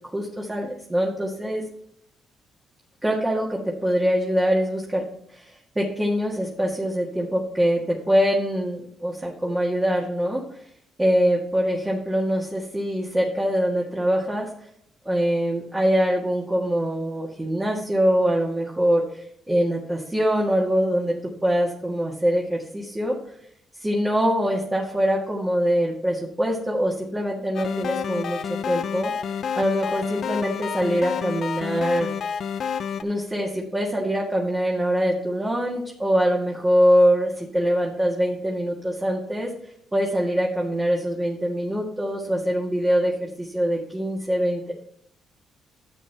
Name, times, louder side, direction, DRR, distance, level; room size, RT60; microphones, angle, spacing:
voice 1, 0.1-1.6 3.0-5.0 5.3-5.5 5.8-10.4 11.0-14.5 15.1-21.1 21.4-23.2 23.8-29.1 29.6-32.1 33.0-39.5 39.9-44.7, equal, 15° right, -3 dB, 1.8 m, -23 dB
sound 1, 27.6-33.0, left 7 dB, 60° left, 0.5 m, -29 dB
11.5 x 7.7 x 2.9 m, 0.71 s
cardioid pair, 90°, 0 cm